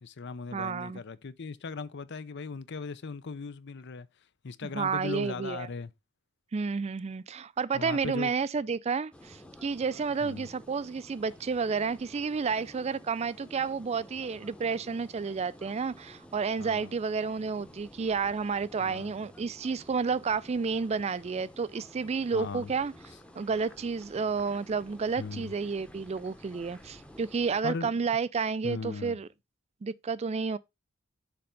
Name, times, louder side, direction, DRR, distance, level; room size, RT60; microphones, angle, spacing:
voice 1, 0.0-4.1 4.4-5.9 7.7-8.3 10.2-10.5 16.6-16.9 18.8-19.1 22.3-22.7 25.2-25.5 27.6-27.9 28.6-29.2, left 4 dB, 55° left, 0.6 m, -38 dB
voice 2, 0.5-1.0 4.6-5.7 6.5-22.9 23.4-29.3 29.8-30.6, right 5 dB, 30° right, 0.4 m, -31 dB
sound 1, 9.1-27.6, equal, 5° left, 0.8 m, -52 dB
6.9 x 4.3 x 5.2 m
head